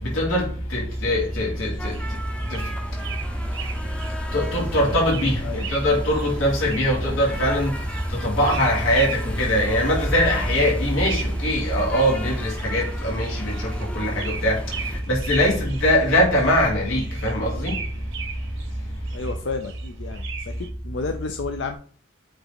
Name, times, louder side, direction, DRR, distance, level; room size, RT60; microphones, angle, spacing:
voice 1, 0.0-2.0 2.5-2.6 4.3-7.7 8.1-14.6 15.1-17.8, equal, 90° left, 2.7 m, -22 dB
sound 1, 0.9-20.7, right 3 dB, 65° right, 1.0 m, -37 dB
sound 2, 1.8-15.0, equal, 5° left, 0.6 m, -34 dB
voice 2, 19.1-21.8, left 4 dB, 60° left, 0.5 m, -31 dB
8.5 x 3.0 x 4.0 m
head